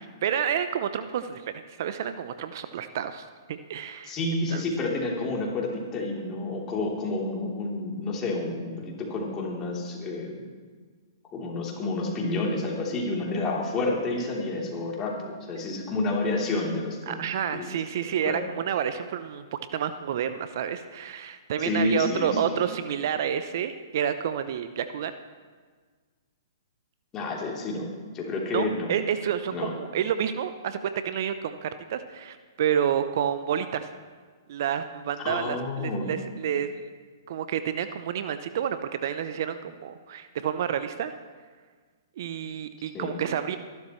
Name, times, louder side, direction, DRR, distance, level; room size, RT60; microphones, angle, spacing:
voice 1, 0.0-4.2 4.5-4.6 17.1-25.2 28.5-33.9 34.5-36.9 37.3-41.1 42.2-43.6, right 9 dB, 55° right, 11 dB, 0.7 m, -29 dB
voice 2, 4.0-10.5 11.3-17.2 17.5-17.6 18.2-18.4 21.6-22.6 27.1-27.9 28.1-28.9 29.5-29.7 35.2-36.1 42.9-43.2, left 2 dB, 25° left, -2 dB, 3.4 m, -29 dB
24.5 x 12.0 x 3.2 m, 1.5 s
hypercardioid pair, 120°, 2 cm